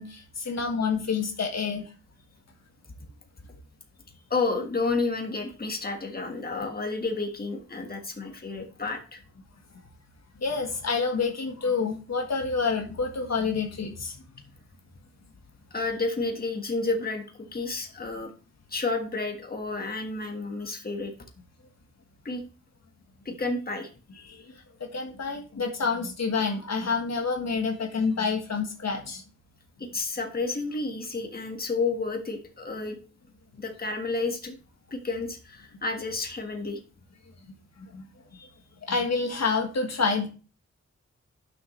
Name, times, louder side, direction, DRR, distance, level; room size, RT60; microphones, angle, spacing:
voice 1, 0.0-1.9 10.4-14.2 24.2-29.2 37.8-38.1 38.9-40.3, left 4 dB, 65° left, 2 dB, 1.5 m, -28 dB
voice 2, 4.3-9.2 15.7-18.3 18.7-21.1 22.2-22.4 23.2-23.9 29.8-33.0 33.6-34.5 34.9-36.8 38.3-38.5, left 3 dB, 30° left, 3 dB, 1.6 m, -31 dB
11.0 x 6.3 x 3.2 m, 0.36 s
wide cardioid pair, 95°, 29 cm